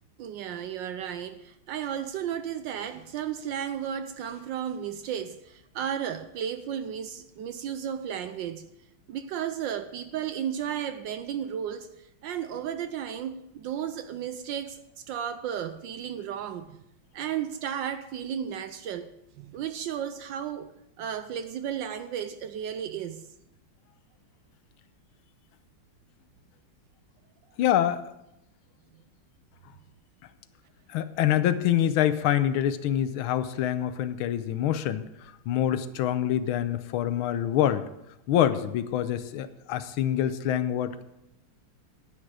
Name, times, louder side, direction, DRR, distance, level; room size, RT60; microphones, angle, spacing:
voice 1, 0.2-8.7 9.1-16.8 17.1-19.1 19.4-20.7 21.0-23.3, right 9 dB, 70° right, 1.1 m, -34 dB
voice 2, 27.6-28.0 30.9-35.1 35.5-37.9 38.3-41.0, left 11 dB, 80° left, 1.5 m, -25 dB
10.5 x 10.0 x 4.8 m
omnidirectional pair, 2.4 m